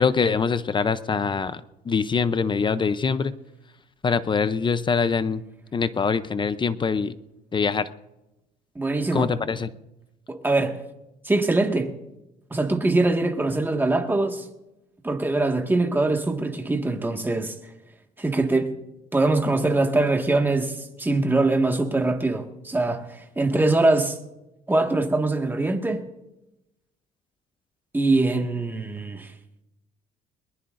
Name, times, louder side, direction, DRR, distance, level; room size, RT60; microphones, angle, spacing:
voice 1, 0.0-3.4 4.0-5.4 5.7-7.2 7.5-7.9 9.1-9.7, left 5 dB, 30° left, 0.6 m, -24 dB
voice 2, 8.8-9.3 10.3-10.8 11.3-11.9 12.5-14.5 15.0-17.5 18.2-18.7 19.1-24.2 24.7-26.0 27.9-29.3, right 2 dB, 10° right, 1.8 m, -23 dB
21.5 x 20.0 x 2.6 m
cardioid pair, 110°, 17 cm